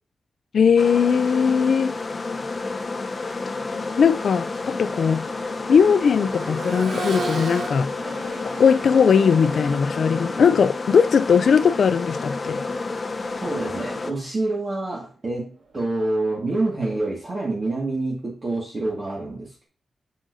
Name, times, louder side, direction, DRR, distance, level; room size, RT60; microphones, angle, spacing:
voice 1, 0.5-1.9 4.0-5.3 5.7-7.9 8.6-12.6, left 6 dB, 65° left, 0.3 m, -19 dB
sound 1, 0.8-14.1, left 3 dB, 30° left, 0.8 m, -30 dB
Accelerating revving vroom, 4.0-13.8 15.5-15.6, right 2 dB, 70° right, 1.8 m, -37 dB
voice 2, 13.4-19.7, right 2 dB, 35° right, 1.8 m, -27 dB
7.5 x 6.4 x 2.6 m
wide cardioid pair, 155°, 0 cm